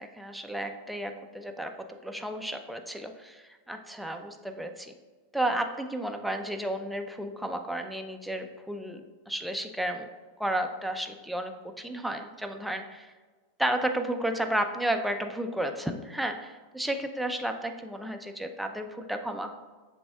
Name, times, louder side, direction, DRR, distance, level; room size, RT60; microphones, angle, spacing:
voice 1, 0.0-1.7 2.0-4.9 5.3-9.0 9.3-10.1 10.4-13.1 13.6-19.5, right 1 dB, ahead, 5 dB, 0.4 m, -32 dB
6.0 x 3.4 x 2.3 m, 1.3 s
hypercardioid pair, 95°, 0 cm